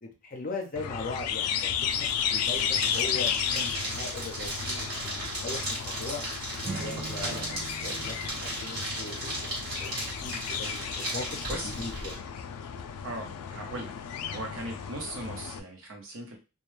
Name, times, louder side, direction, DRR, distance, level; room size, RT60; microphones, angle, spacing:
voice 1, 0.0-6.2 6.8-7.5 7.8-12.2, left 3 dB, 40° left, 2 dB, 0.6 m, -39 dB
sound 1, 0.7-15.6, left 8 dB, 90° left, 0.3 m, -34 dB
sound 2, 1.8-12.1, right 1 dB, 45° right, 1.2 m, -36 dB
Acoustic guitar / Strum, 6.6-10.1, right 4 dB, 20° right, 0.6 m, -43 dB
voice 2, 6.6-7.8 11.5-11.8 13.0-13.9 14.3-16.4, right 1 dB, 60° right, 1 dB, 0.8 m, -39 dB
2.2 x 2.2 x 3.1 m, 0.30 s
head